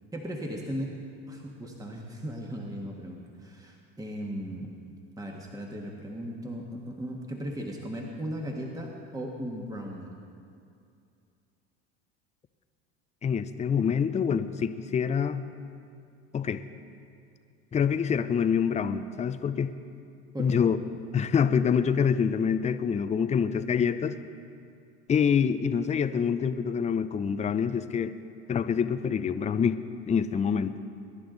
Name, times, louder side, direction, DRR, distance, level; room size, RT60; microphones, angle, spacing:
voice 1, 0.1-1.0 1.3-4.7 5.2-10.1 20.3-20.6, equal, 10° right, 0 dB, 1.5 m, -37 dB
voice 2, 13.2-15.5 16.3-16.7 17.7-19.7 20.4-20.8 21.1-24.2 25.1-28.1 28.5-30.7, left 7 dB, 20° left, 11 dB, 0.6 m, -26 dB
22.5 x 11.0 x 4.0 m, 2.5 s
hypercardioid pair, 85°, 33 cm